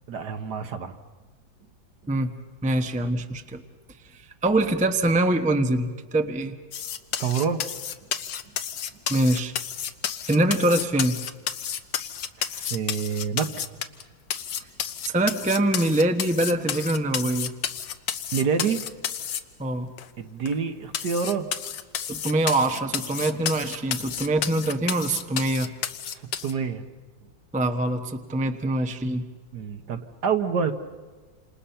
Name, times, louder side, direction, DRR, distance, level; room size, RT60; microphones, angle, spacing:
voice 1, 0.1-1.0 7.2-7.7 12.4-13.5 18.3-18.8 20.2-21.5 26.4-26.8 29.5-30.7, right 6 dB, 60° right, 7 dB, 1.8 m, -27 dB
voice 2, 2.6-3.6 4.1-6.5 9.1-9.5 10.3-11.2 15.0-17.5 19.6-19.9 22.1-25.7 27.5-29.2, right 1 dB, 5° right, 6 dB, 0.7 m, -24 dB
sound 1, 6.7-14.0 14.3-19.4 20.0-20.1 20.5-20.6 20.9-26.5, left 9 dB, 70° left, 1.5 m, -31 dB
28.5 x 27.5 x 5.7 m, 1.4 s
omnidirectional pair, 2.1 m